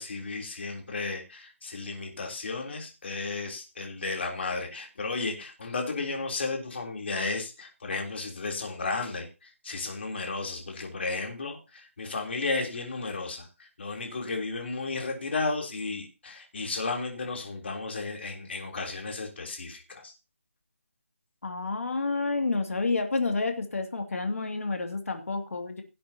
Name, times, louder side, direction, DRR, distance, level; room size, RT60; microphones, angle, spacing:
voice 1, 0.0-20.1, left 3 dB, 50° left, 2 dB, 3.5 m, -34 dB
voice 2, 21.4-25.8, left 3 dB, 75° left, 4 dB, 2.5 m, -29 dB
17.5 x 8.6 x 2.9 m, 0.28 s
hypercardioid pair, 170°, 8 cm